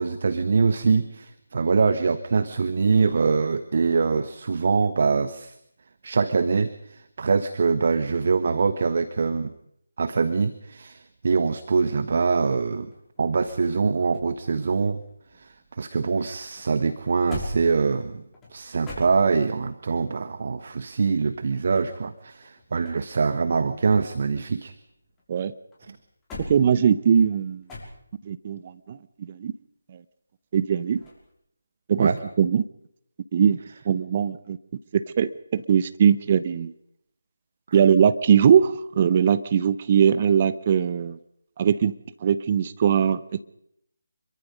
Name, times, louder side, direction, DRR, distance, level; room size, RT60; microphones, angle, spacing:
voice 1, 0.0-5.6 6.0-9.5 10.0-12.9 13.2-15.0 15.4-18.2 18.5-24.7 25.9-26.0 32.0-32.2, right 4 dB, 50° right, 11 dB, 1.3 m, -24 dB
sound 1, 12.6-15.8 16.1-19.7 21.4-23.2 23.5-25.3 25.7-28.4 31.0-31.3, left 2 dB, 10° left, 5.7 m, -43 dB
voice 2, 26.4-27.6 28.2-29.5 30.5-31.0 31.9-32.1 32.4-32.6 33.3-33.6 33.8-34.6 34.9-36.7 37.7-41.2 41.6-41.9 42.2-43.4, right 8 dB, 30° right, 14 dB, 1.0 m, -21 dB
26.0 x 23.5 x 5.4 m, 0.73 s
figure-of-eight pair, 155°, 0 cm